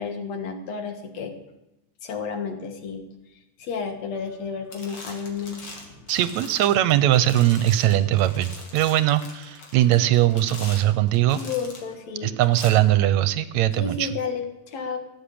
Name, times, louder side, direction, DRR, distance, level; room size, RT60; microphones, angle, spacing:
voice 1, 0.0-1.3 2.0-3.0 3.6-5.6 11.3-12.4 13.8-15.0, left 5 dB, 65° left, 7 dB, 2.6 m, -31 dB
sound 1, 4.2-4.4 4.7-11.9 12.4-12.7, left 2 dB, 50° left, 3.1 m, -42 dB
voice 2, 6.1-11.4 12.2-14.1, right 13 dB, 80° right, 14 dB, 1.8 m, -20 dB
16.0 x 8.0 x 8.5 m, 0.93 s
omnidirectional pair, 3.4 m